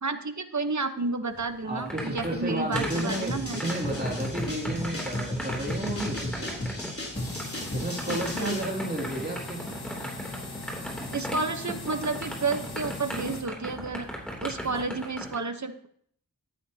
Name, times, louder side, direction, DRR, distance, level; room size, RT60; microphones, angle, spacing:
voice 1, 0.0-3.6 8.1-8.6 11.1-14.1 14.4-15.9, right 3 dB, 50° right, 9 dB, 1.1 m, -31 dB
sound 1, 1.3-15.3, equal, 5° left, 3.0 m, -38 dB
voice 2, 1.6-6.5 7.7-9.6, right 1 dB, 25° right, -2 dB, 2.7 m, -32 dB
sound 2, 2.7-8.6, left 1 dB, 40° left, 3.4 m, -34 dB
sound 3, 7.1-13.4, left 2 dB, 85° left, 1.7 m, -40 dB
14.0 x 10.0 x 2.9 m, 0.64 s
wide cardioid pair, 45°, 37 cm